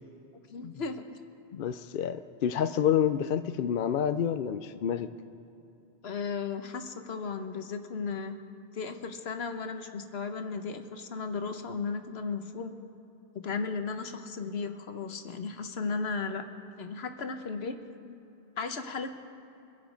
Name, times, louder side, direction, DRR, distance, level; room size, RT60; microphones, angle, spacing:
voice 1, 0.5-1.0 6.0-8.4 8.7-12.8 13.3-16.5 16.8-17.8 18.0-18.2 18.6-19.1, left 4 dB, 80° left, 7 dB, 1.2 m, -35 dB
voice 2, 1.5-5.1, left 9 dB, 60° left, 10 dB, 0.7 m, -28 dB
24.5 x 8.2 x 5.1 m, 2.9 s
omnidirectional pair, 1.1 m